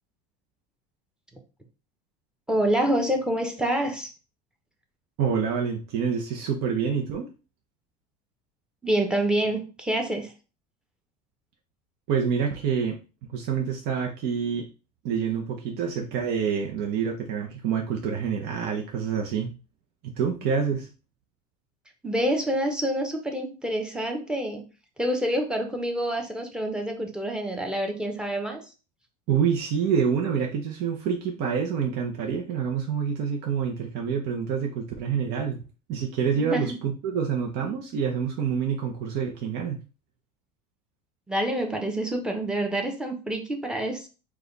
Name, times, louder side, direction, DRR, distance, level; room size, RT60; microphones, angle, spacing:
voice 1, 2.5-4.1 8.8-10.3 22.0-24.6 25.0-28.6 36.4-36.7 41.3-44.1, right 1 dB, 5° right, 3 dB, 0.9 m, -27 dB
voice 2, 5.2-7.3 12.1-13.0 13.3-14.7 15.0-19.5 20.0-20.9 29.3-35.6 35.9-39.8, right 7 dB, 55° right, 1 dB, 0.8 m, -27 dB
4.8 x 2.4 x 3.9 m, 0.33 s
supercardioid pair, 130°, 19 cm